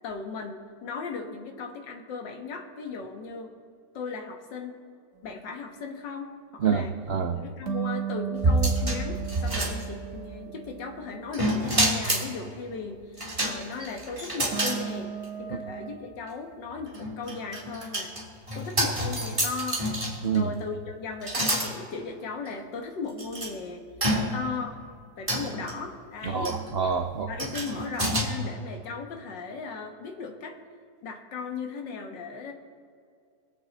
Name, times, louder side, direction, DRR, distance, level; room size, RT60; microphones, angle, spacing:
voice 1, 0.0-3.5 3.9-4.8 5.2-6.9 7.3-18.1 18.6-19.8 20.3-23.9 24.3-24.8 25.2-26.5 27.3-30.6 31.0-32.5, left 4 dB, 80° left, 5 dB, 1.9 m, -37 dB
voice 2, 6.6-7.4 15.5-15.6 20.2-20.5 26.2-27.3, right 6 dB, 80° right, 6 dB, 0.5 m, -27 dB
sound 1, 7.7-11.8 14.5-16.0, right 9 dB, 45° right, 1.7 m, -35 dB
sound 2, 8.4-10.2 11.3-12.3 13.2-14.8 15.2-15.3 16.9-20.4 21.2-21.7 22.5-22.6 23.2-23.5 24.0-24.6 25.3-25.7 26.4-26.7 27.4-28.2, right 1 dB, 15° right, 2.2 m, -28 dB
23.0 x 7.9 x 4.0 m, 2.3 s
omnidirectional pair, 1.9 m